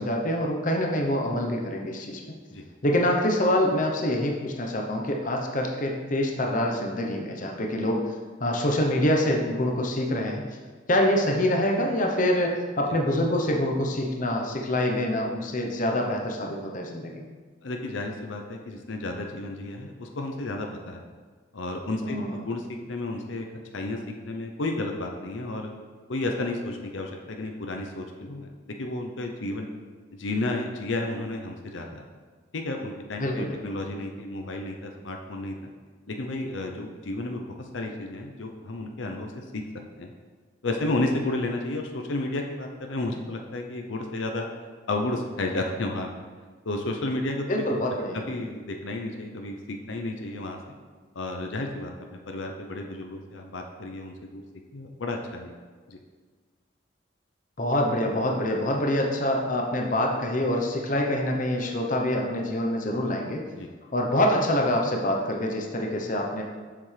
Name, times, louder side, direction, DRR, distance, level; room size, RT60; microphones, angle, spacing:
voice 1, 0.0-2.2 2.8-8.1 8.4-10.4 10.9-17.2 22.0-22.3 33.2-33.6 47.5-48.2 57.6-63.4 63.9-66.4, left 1 dB, 40° left, 1 dB, 0.8 m, -25 dB
voice 2, 17.6-21.0 21.5-23.5 23.7-25.7 26.1-28.5 28.8-29.7 30.1-32.0 32.5-35.6 36.1-39.6 40.0-40.1 40.6-44.5 44.9-46.1 46.6-47.6 48.3-50.6 51.1-54.4 54.7-55.5 55.9-56.0 63.6-63.7, left 2 dB, 75° left, 2 dB, 0.7 m, -32 dB
7.1 x 6.9 x 3.3 m, 1.5 s
head